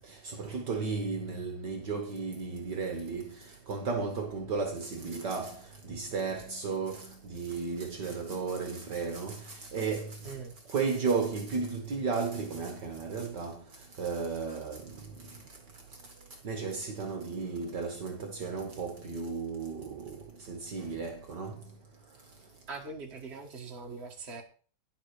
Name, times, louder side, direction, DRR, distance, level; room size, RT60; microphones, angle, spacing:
voice 1, 0.2-3.3 3.7-5.6 5.9-10.3 10.7-13.6 14.0-14.8 16.4-21.6, right 4 dB, 60° right, 1.8 m, -34 dB
voice 2, 22.7-24.4, right 4 dB, 35° right, 1.8 m, -42 dB
10.5 x 7.8 x 4.8 m
omnidirectional pair, 2.2 m